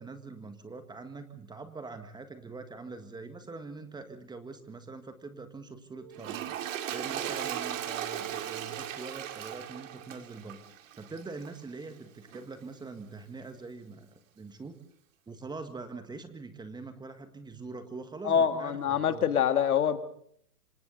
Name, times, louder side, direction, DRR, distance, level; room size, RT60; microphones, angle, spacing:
voice 1, 0.0-6.4 6.9-10.6 11.0-14.7 15.3-19.3, right 3 dB, 10° right, 1.7 m, -43 dB
Wind instrument woodwind instrument, 5.9-10.4, right 12 dB, 35° right, 2.9 m, -46 dB
Toilet flush, 6.1-11.6 12.3-12.4, right 10 dB, 60° right, 2.5 m, -38 dB
voice 2, 18.2-20.0, left 8 dB, 70° left, 2.1 m, -25 dB
27.0 x 25.5 x 4.1 m
hypercardioid pair, 125°, 45 cm